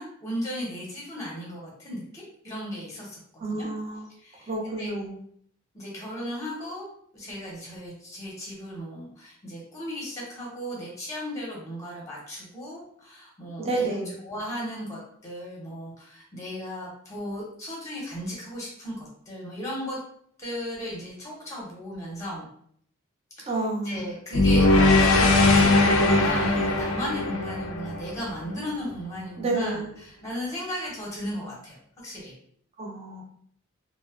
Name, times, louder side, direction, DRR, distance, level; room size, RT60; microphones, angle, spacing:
voice 1, 0.0-3.7 4.1-4.5 4.8-4.9 5.7-6.9 7.1-13.9 14.2-20.0 20.4-22.5 23.4-23.5 23.8-32.3, equal, 15° left, -4 dB, 0.7 m, -36 dB
voice 2, 3.4-4.1 4.5-5.1 13.6-14.1 23.5-24.1 29.4-29.9 32.8-33.2, right 2 dB, 30° right, -1 dB, 0.5 m, -29 dB
sound 1, 24.3-28.6, left 2 dB, 80° left, 0.4 m, -20 dB
2.6 x 2.0 x 2.4 m, 0.64 s
head